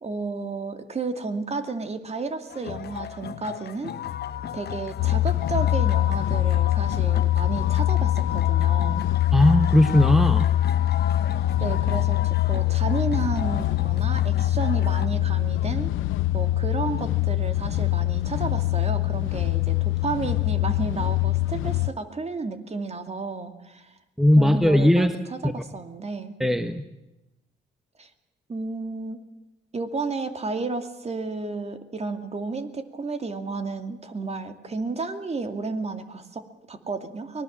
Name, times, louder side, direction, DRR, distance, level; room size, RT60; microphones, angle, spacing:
voice 1, 0.0-3.9 4.5-9.0 11.6-15.9 16.3-23.9 24.4-26.4 28.0-28.1 28.5-29.2 29.7-37.4, right 3 dB, 30° right, 8 dB, 2.5 m, -32 dB
sound 1, 2.5-15.1, left 10 dB, 55° left, 1.0 m, -34 dB
sound 2, 5.0-21.9, left 14 dB, 80° left, 0.7 m, -23 dB
voice 2, 9.3-10.5 24.2-25.1 25.4-25.5 26.4-26.8, left 1 dB, ahead, 9 dB, 1.3 m, -18 dB
24.0 x 19.5 x 7.4 m, 0.94 s
cardioid pair, 90°, 20 cm